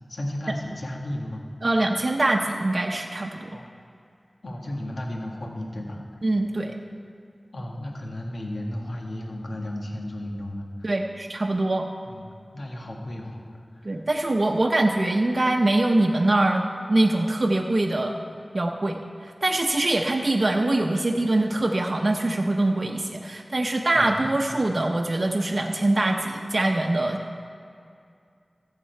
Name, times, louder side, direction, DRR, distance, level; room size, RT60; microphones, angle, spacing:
voice 1, 0.1-1.4 3.5-3.7 4.4-6.0 7.5-10.9 12.0-14.0 23.9-24.6, left 1 dB, 80° left, 0 dB, 1.5 m, -34 dB
voice 2, 1.6-3.6 6.2-6.7 10.8-11.9 13.8-18.2 18.5-27.2, right 2 dB, 60° right, 2 dB, 0.7 m, -23 dB
14.5 x 7.5 x 4.5 m, 2.4 s
wide cardioid pair, 50°, 0 cm